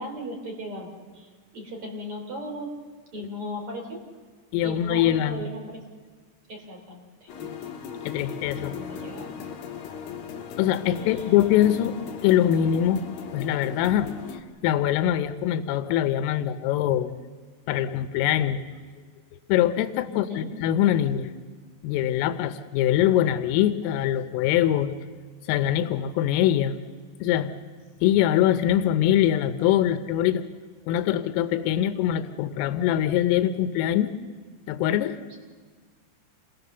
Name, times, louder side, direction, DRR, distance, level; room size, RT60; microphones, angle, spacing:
voice 1, 0.0-2.7 3.1-4.2 4.6-5.8 6.5-7.5 8.5-9.3 11.0-11.2 20.1-20.5 35.3-35.4, equal, 30° right, 1 dB, 3.8 m, -37 dB
voice 2, 4.5-5.4 8.0-8.7 10.6-12.0 12.2-13.0 13.3-14.1 14.6-17.1 17.7-18.6 19.5-21.3 21.8-24.9 25.5-26.8 27.2-27.5 28.0-30.4 30.9-34.1 34.7-35.2, left 11 dB, 90° left, 10 dB, 3.4 m, -23 dB
sound 1, 7.3-14.4, left 7 dB, 60° left, 2.9 m, -38 dB
28.0 x 18.5 x 6.8 m, 1.5 s
omnidirectional pair, 5.7 m